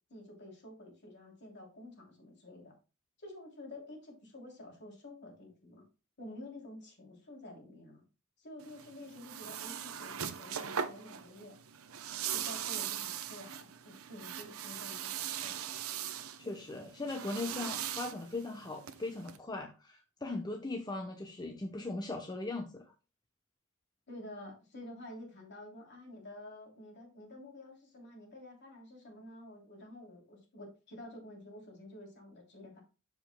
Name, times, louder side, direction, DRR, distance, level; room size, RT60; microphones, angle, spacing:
voice 1, 0.1-2.7 3.2-5.8 6.2-8.0 8.4-11.6 12.3-15.6 24.1-32.8, left 1 dB, 55° left, 0 dB, 3.0 m, -50 dB
sound 1, 8.6-19.4, right 9 dB, 85° right, 0.7 m, -40 dB
voice 2, 16.4-22.8, left 2 dB, 20° left, 2 dB, 0.8 m, -39 dB
13.0 x 5.1 x 2.2 m, 0.32 s
head